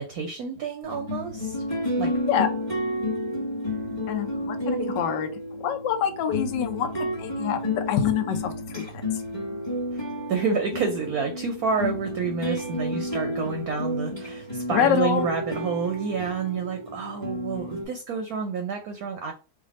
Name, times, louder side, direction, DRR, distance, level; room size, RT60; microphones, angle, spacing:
voice 1, 0.0-1.6 2.0-2.1 9.9-10.0 10.3-19.3, right 5 dB, 65° right, 4 dB, 0.9 m, -29 dB
sound 1, 0.8-17.8, left 1 dB, 15° left, 1.1 m, -31 dB
voice 2, 4.1-5.3 5.6-8.9 14.7-15.3, left 9 dB, 70° left, 7 dB, 1.3 m, -26 dB
3.3 x 2.5 x 4.0 m, 0.33 s
omnidirectional pair, 2.1 m